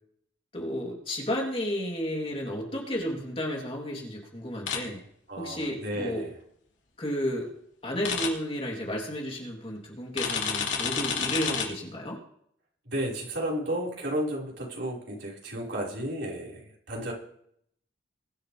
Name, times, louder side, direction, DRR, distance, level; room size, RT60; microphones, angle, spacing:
voice 1, 0.5-5.0 5.4-6.3 7.0-7.5 7.8-12.2, equal, 30° left, -2 dB, 3.4 m, -32 dB
sound 1, 4.7-4.8 8.0-8.3 10.2-11.6, left 6 dB, 75° left, 3.2 m, -29 dB
voice 2, 5.3-6.3 12.9-17.1, right 1 dB, 65° right, -4 dB, 5.2 m, -33 dB
22.5 x 11.5 x 3.5 m, 0.67 s
head